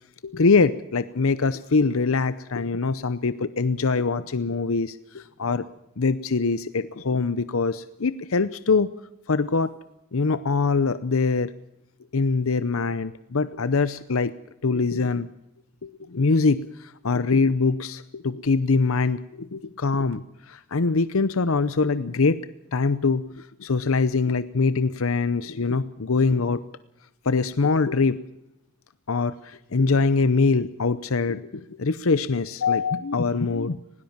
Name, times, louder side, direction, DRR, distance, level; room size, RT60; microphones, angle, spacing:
voice 1, 0.2-5.6 6.0-8.9 9.3-9.7 10.1-11.5 12.1-14.3 14.6-15.3 15.8-22.4 22.7-23.3 23.6-26.6 27.3-28.2 29.1-33.8, left 4 dB, 70° left, 14 dB, 0.7 m, -23 dB
20.0 x 18.5 x 7.3 m, 0.86 s
head